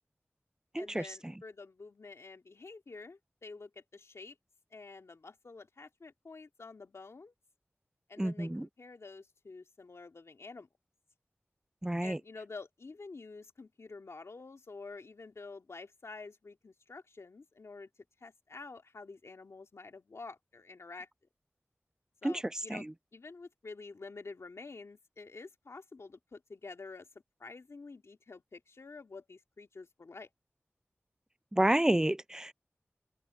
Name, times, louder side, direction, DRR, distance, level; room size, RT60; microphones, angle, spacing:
voice 1, 0.7-4.4 4.7-7.3 8.1-10.7 12.0-17.9 18.2-21.1 22.2-22.9 23.1-27.1 27.4-30.3, left 3 dB, 90° left, 2.5 m, -49 dB
voice 2, 8.2-8.7 11.8-12.2 22.2-22.3 22.7-22.9 31.5-32.5, right 1 dB, 15° right, 0.4 m, -29 dB
wide cardioid pair, 55°, 5 cm